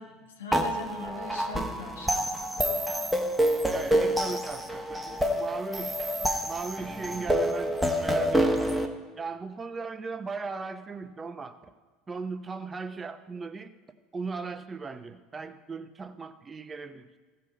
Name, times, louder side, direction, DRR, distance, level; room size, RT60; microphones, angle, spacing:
voice 1, 0.0-2.7, left 2 dB, 75° left, 3 dB, 1.3 m, -41 dB
sound 1, 0.5-8.9, equal, 5° right, 1.1 m, -27 dB
voice 2, 3.7-6.0 6.4-7.8 8.0-11.7 12.1-13.7 14.1-17.1, right 4 dB, 20° right, 10 dB, 0.7 m, -38 dB
16.0 x 5.6 x 5.2 m, 1.4 s
figure-of-eight pair, 70°, 0 cm